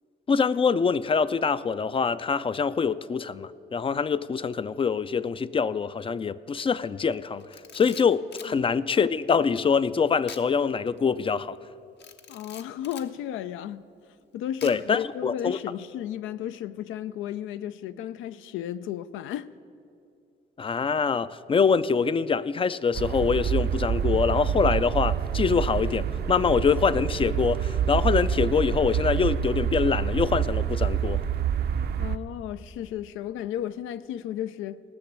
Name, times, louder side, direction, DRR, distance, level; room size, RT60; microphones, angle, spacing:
voice 1, 0.3-11.6 14.6-15.6 20.6-31.2, left 5 dB, 25° left, 0.3 m, -24 dB
Camera, 7.4-8.6 10.2-10.5 10.9-11.0 12.0-13.1 14.6-15.0, left 7 dB, 60° left, 0.9 m, -45 dB
voice 2, 12.3-13.9 14.3-19.5 32.0-34.8, left 11 dB, 85° left, 0.5 m, -34 dB
sound 1, 22.9-32.2, right 8 dB, 55° right, 0.5 m, -27 dB
17.5 x 6.1 x 8.1 m
cardioid pair, 90°, 20 cm